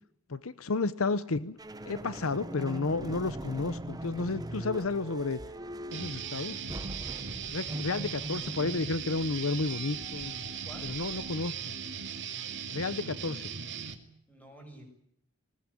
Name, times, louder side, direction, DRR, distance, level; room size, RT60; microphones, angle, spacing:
voice 1, 0.3-1.6 1.9-5.4 5.9-6.6 7.5-10.3 10.8-11.7 12.7-13.4, left 3 dB, 70° left, 15 dB, 0.9 m, -32 dB
sound 1, 1.6-11.7, right 1 dB, 20° right, 1.0 m, -42 dB
Guitar, 5.9-13.9, right 7 dB, 55° right, 2.6 m, -38 dB
voice 2, 7.1-8.4 10.6-10.9 14.3-14.8, right 1 dB, 5° left, 3 dB, 6.8 m, -52 dB
20.0 x 19.5 x 9.9 m, 0.72 s
head